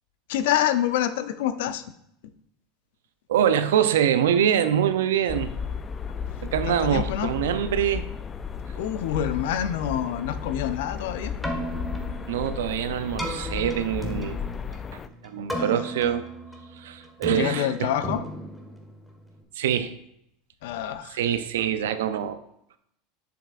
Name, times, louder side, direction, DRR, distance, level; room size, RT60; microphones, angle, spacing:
voice 1, 0.3-1.8 6.7-7.3 8.8-11.3 15.5-15.8 17.3-18.2 20.6-21.2, left 10 dB, 75° left, 11 dB, 0.5 m, -27 dB
voice 2, 3.3-5.5 6.5-8.0 12.3-14.4 15.2-16.2 16.8-17.9 19.6-19.9 21.1-22.4, right 9 dB, 80° right, 11 dB, 0.5 m, -24 dB
sound 1, 5.3-15.1, left 7 dB, 30° left, 0.3 m, -34 dB
Keyboard (musical), 11.3-19.4, right 1 dB, 5° left, 1.4 m, -35 dB
7.7 x 6.8 x 2.5 m, 0.74 s
hypercardioid pair, 95°, 0 cm